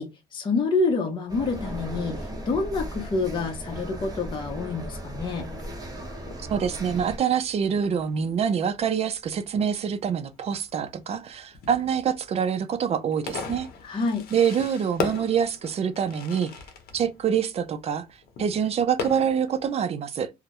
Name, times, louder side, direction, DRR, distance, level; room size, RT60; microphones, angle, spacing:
voice 1, 0.0-2.2 2.5-5.4 13.8-14.2, left 3 dB, 30° left, 0.6 m, -27 dB
sound 1, 1.3-7.2, right 1 dB, 20° right, 0.9 m, -36 dB
Fireworks, 4.6-19.7, left 4 dB, 65° left, 0.7 m, -40 dB
voice 2, 6.5-13.7 14.3-16.5 16.9-18.1 18.4-20.3, right 7 dB, 40° right, 0.4 m, -25 dB
2.2 x 2.0 x 2.8 m
cardioid pair, 110°, 17 cm